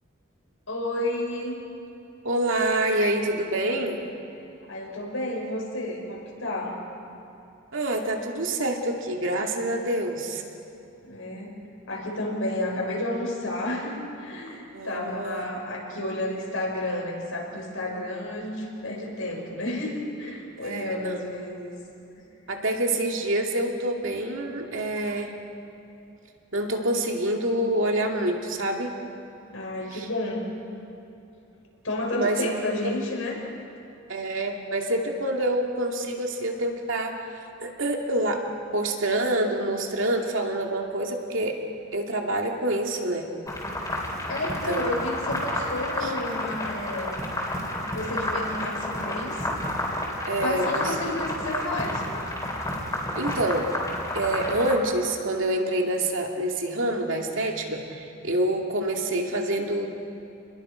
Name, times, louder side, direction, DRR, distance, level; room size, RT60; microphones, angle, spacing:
voice 1, 0.7-1.6 4.7-6.8 11.0-11.6 11.9-21.7 22.2-22.3 29.5-30.5 31.8-33.4 44.3-47.2 47.8-49.4 50.4-52.1, left 1 dB, 85° left, -2 dB, 5.7 m, -31 dB
voice 2, 2.2-4.0 7.7-10.4 14.7-15.4 17.9-18.0 20.6-21.2 22.5-25.3 26.5-28.9 29.9-30.1 32.1-32.4 34.1-37.1 37.6-38.4 38.7-41.6 41.9-43.3 44.4-44.9 46.0-46.1 50.3-50.9 53.1-53.7 54.1-59.9, right 1 dB, 70° right, 1 dB, 2.5 m, -27 dB
sound 1, 43.5-54.7, left 1 dB, 15° left, 3.6 m, -30 dB
29.5 x 21.0 x 5.2 m, 2.8 s
head